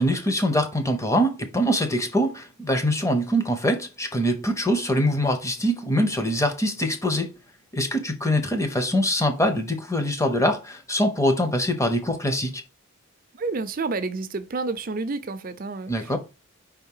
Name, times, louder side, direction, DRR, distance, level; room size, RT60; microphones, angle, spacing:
voice 1, 0.0-7.3 7.7-12.6 15.9-16.2, equal, 15° left, 0.8 m, -23 dB
voice 2, 13.3-16.1, right 3 dB, 40° right, 0.5 m, -30 dB
5.2 x 3.6 x 5.5 m
head